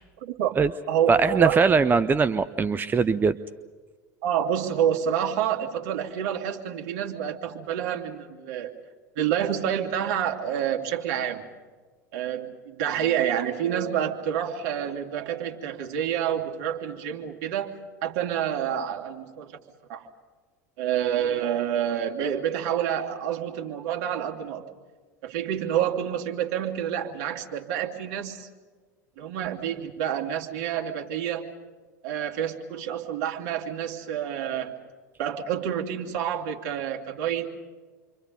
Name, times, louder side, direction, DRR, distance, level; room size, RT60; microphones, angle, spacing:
voice 1, 0.2-0.6 0.9-1.6 4.2-8.7 9.2-11.4 12.1-17.7 18.0-19.5 19.9-20.1 20.8-24.6 25.2-28.5 29.2-31.5 32.0-34.7 35.2-37.5, right 9 dB, 55° right, 2 dB, 2.9 m, -28 dB
voice 2, 1.1-3.4, right 5 dB, 20° right, 14 dB, 0.7 m, -21 dB
29.0 x 24.5 x 5.4 m, 1.4 s
figure-of-eight pair, 80°, 9 cm